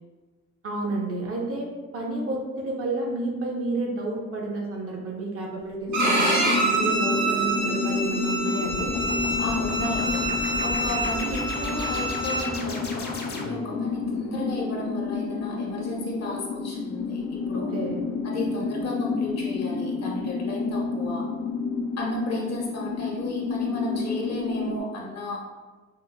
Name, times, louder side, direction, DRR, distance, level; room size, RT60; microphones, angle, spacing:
voice 1, 0.6-1.7 1.9-6.3 6.7-8.9 17.5-18.0, right 2 dB, 50° right, -1 dB, 0.7 m, -30 dB
sound 1, 5.9-24.8, left 4 dB, 90° left, 0.5 m, -30 dB
Bowed string instrument, 5.9-12.4, right 2 dB, 85° right, 1.3 m, -27 dB
sound 2, 8.6-13.8, left 2 dB, 35° left, 0.5 m, -35 dB
voice 2, 9.4-10.3 10.6-17.7 18.2-21.3 22.0-25.5, left 1 dB, 60° left, -2 dB, 0.8 m, -33 dB
4.7 x 2.1 x 2.2 m, 1.3 s
cardioid pair, 115°, 29 cm